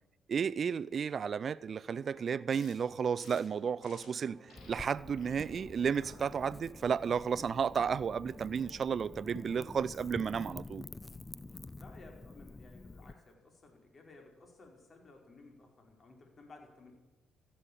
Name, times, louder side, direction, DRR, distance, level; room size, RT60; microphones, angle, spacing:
voice 1, 0.3-4.4 4.7-10.8, right 6 dB, 50° right, 0.5 m, -33 dB
sound 1, 2.0-10.5, right 4 dB, 35° right, 1.1 m, -56 dB
sound 2, 2.5-2.7 3.2-3.4 3.8-4.1 4.5-4.7 5.2-5.4 5.9-6.2 6.7-7.0, left 4 dB, 70° left, 4.8 m, -57 dB
Wind / Fire, 4.6-13.1, left 3 dB, 20° left, 0.7 m, -49 dB
voice 2, 11.8-16.9, left 3 dB, 40° left, 4.5 m, -56 dB
14.5 x 8.5 x 8.7 m
supercardioid pair, 65°, 0 cm